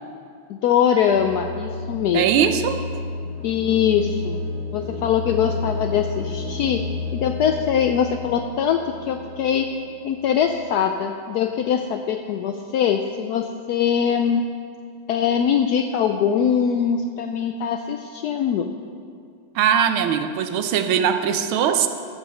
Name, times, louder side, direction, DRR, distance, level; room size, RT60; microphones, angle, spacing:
voice 1, 0.5-2.3 3.4-4.4 4.7-6.8 7.1-9.7 10.0-14.4 15.1-18.7, left 8 dB, 80° left, 5 dB, 0.8 m, -22 dB
sound 1, 1.1-10.9, left 3 dB, 60° right, 1.1 m, -32 dB
voice 2, 2.1-2.8 19.5-21.9, right 8 dB, 85° right, 8 dB, 1.5 m, -20 dB
15.0 x 7.0 x 5.6 m, 2.3 s
omnidirectional pair, 2.2 m